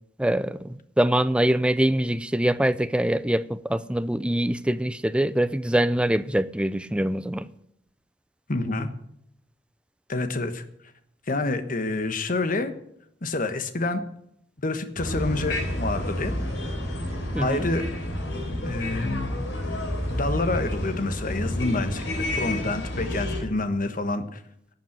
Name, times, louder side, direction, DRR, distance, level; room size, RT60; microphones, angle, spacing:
voice 1, 0.2-7.5 17.3-17.7, right 1 dB, 5° right, 0.5 m, -24 dB
voice 2, 8.5-8.9 10.1-10.6 11.3-12.7 13.2-14.0 14.6-16.3 17.4-17.8 18.7-19.3 20.1-24.4, left 2 dB, 50° left, 1.3 m, -27 dB
sound 1, 15.0-23.4, left 1 dB, 80° left, 3.9 m, -30 dB
12.0 x 7.3 x 9.3 m
head